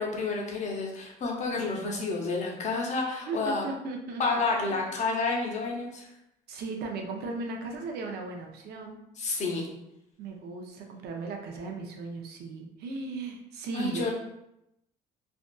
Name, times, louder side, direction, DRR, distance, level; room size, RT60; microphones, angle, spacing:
voice 1, 0.0-3.6 4.2-6.1 9.2-9.7 13.7-14.1, left 3 dB, 45° left, -1 dB, 0.7 m, -30 dB
voice 2, 3.3-4.4 4.7-4.9 6.5-9.0 10.2-14.1, right 3 dB, 75° right, 2 dB, 0.5 m, -37 dB
2.5 x 2.4 x 2.2 m, 0.84 s
cardioid pair, 110°, 17 cm